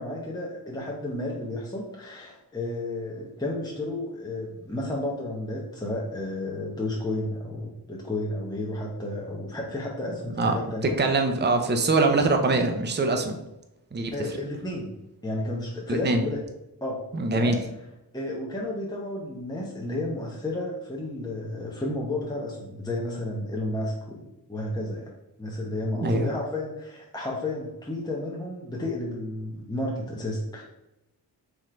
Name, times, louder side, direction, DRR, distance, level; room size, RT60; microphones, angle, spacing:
voice 1, 0.0-11.2 14.1-16.4 16.8-17.0 17.3-17.6 18.1-25.1 25.4-30.6, left 1 dB, 10° left, -3 dB, 0.9 m, -32 dB
voice 2, 10.4-13.4 13.9-14.1 15.9-16.2 17.1-17.6 26.0-26.3, right 3 dB, 25° right, 5 dB, 0.6 m, -23 dB
3.7 x 3.1 x 4.3 m, 0.89 s
cardioid pair, 50°, 41 cm